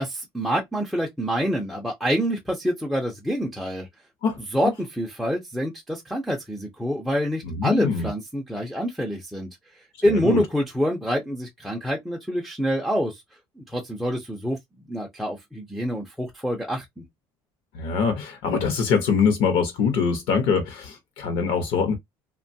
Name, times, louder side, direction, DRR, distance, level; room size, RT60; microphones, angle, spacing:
voice 1, 0.0-3.9 4.5-13.2 13.6-14.6 14.9-17.0, equal, ahead, 0.4 m, -26 dB
voice 2, 4.2-4.7 7.4-8.1 10.1-10.4 17.7-22.0, left 5 dB, 65° left, 0.7 m, -23 dB
3.0 x 2.2 x 2.6 m
cardioid pair, 175°, 9 cm